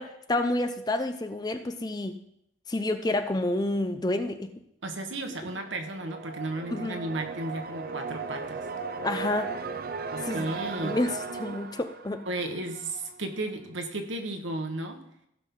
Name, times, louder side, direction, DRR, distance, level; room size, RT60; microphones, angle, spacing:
voice 1, 0.0-2.2 2.7-4.5 5.4-5.5 6.7-7.0 9.0-9.5 10.3-10.5 10.8-12.3, left 2 dB, 20° left, 8 dB, 0.6 m, -29 dB
voice 2, 4.8-8.7 10.1-11.0 12.3-15.0, right 2 dB, 85° right, 5 dB, 1.3 m, -34 dB
sound 1, 5.4-13.2, right 4 dB, 50° right, 0.6 m, -37 dB
15.5 x 5.9 x 3.8 m, 0.77 s
head